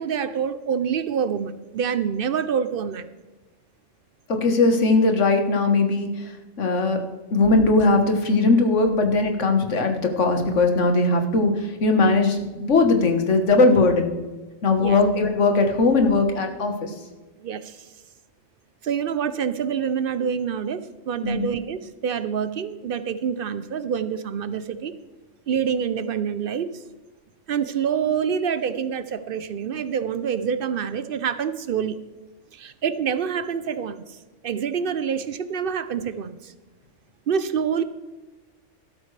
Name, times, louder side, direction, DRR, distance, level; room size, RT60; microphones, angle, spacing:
voice 1, 0.0-3.1 14.8-15.0 17.4-17.8 18.8-24.9 25.5-26.8 27.5-32.0 32.5-34.2 34.4-36.5 37.3-37.8, right 7 dB, 60° right, 13 dB, 0.7 m, -26 dB
voice 2, 4.3-7.0 7.3-14.1 14.6-16.9 21.2-21.4, left 3 dB, 75° left, 5 dB, 1.6 m, -19 dB
12.5 x 12.5 x 3.3 m, 1.2 s
omnidirectional pair, 1.3 m